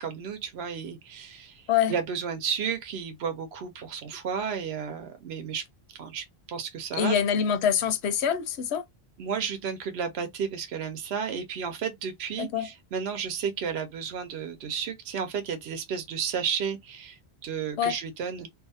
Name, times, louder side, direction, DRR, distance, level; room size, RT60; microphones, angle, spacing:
voice 1, 0.0-1.6 1.9-5.6 5.9-7.2 9.2-17.2 17.4-18.5, right 7 dB, 80° right, 0.9 m, -32 dB
voice 2, 7.0-8.8 12.4-12.7 17.8-18.0, left 8 dB, 85° left, 0.9 m, -25 dB
2.5 x 2.4 x 2.7 m
omnidirectional pair, 1.1 m